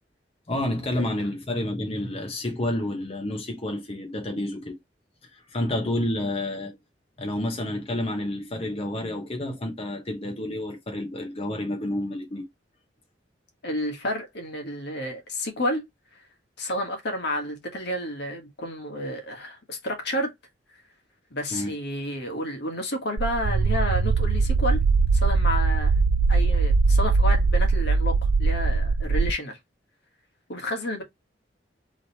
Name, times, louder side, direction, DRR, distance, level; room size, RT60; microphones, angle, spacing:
voice 1, 0.5-4.8 5.3-6.8 7.2-12.5 21.5-21.8, left 1 dB, 35° left, 1.1 m, -29 dB
voice 2, 13.6-15.9 16.6-20.3 21.3-24.8 25.2-25.9 26.3-29.6 30.5-31.0, left 1 dB, 65° left, 1.6 m, -30 dB
sound 1, 23.2-29.3, right 4 dB, 80° right, 0.4 m, -21 dB
3.9 x 3.2 x 4.1 m
head